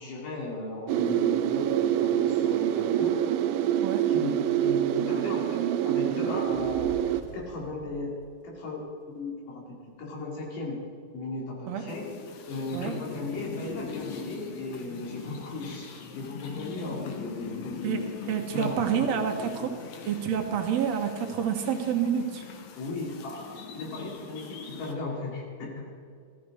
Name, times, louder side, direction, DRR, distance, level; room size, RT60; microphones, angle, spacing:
voice 1, 0.0-3.2 4.1-6.9 7.3-8.1 8.4-8.9 9.1-9.6 10.0-10.8 11.1-12.1 12.4-18.0 18.5-19.8 22.8-25.9, left 2 dB, 90° left, -2 dB, 4.3 m, -36 dB
sound 1, 0.9-7.2, right 11 dB, 85° right, 2.1 m, -26 dB
voice 2, 3.8-4.1 11.7-11.9 12.7-13.0 17.8-19.7 20.0-22.4, right 8 dB, 65° right, 5 dB, 2.2 m, -28 dB
Fire, 6.4-8.9, left 1 dB, 30° left, 2.6 m, -47 dB
sound 2, 11.9-24.9, left 5 dB, 65° left, 2.2 m, -42 dB
15.0 x 13.0 x 4.9 m, 2.2 s
omnidirectional pair, 3.6 m